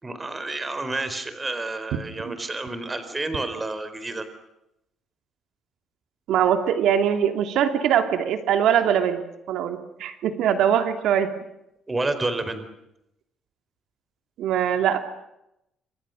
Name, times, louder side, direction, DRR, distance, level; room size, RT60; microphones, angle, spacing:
voice 1, 0.0-4.3 11.9-12.7, right 2 dB, 15° right, 10 dB, 4.3 m, -29 dB
voice 2, 6.3-9.2 9.5-11.3 14.4-15.0, right 9 dB, 75° right, 7 dB, 2.9 m, -22 dB
30.0 x 26.0 x 6.5 m, 0.84 s
cardioid pair, 140°, 0 cm